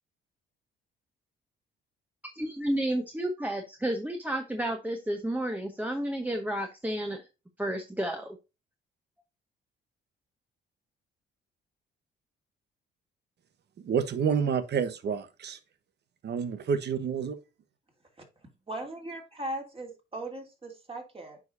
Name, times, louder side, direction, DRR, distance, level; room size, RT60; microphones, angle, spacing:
voice 1, 2.3-7.2 7.6-8.4, right 1 dB, 10° right, 1.1 m, -31 dB
voice 2, 13.8-15.6 16.2-17.4, right 6 dB, 55° right, 1.2 m, -29 dB
voice 3, 18.7-21.4, right 1 dB, 30° right, 2.9 m, -38 dB
9.1 x 5.0 x 2.7 m
cardioid pair, 90°, 20 cm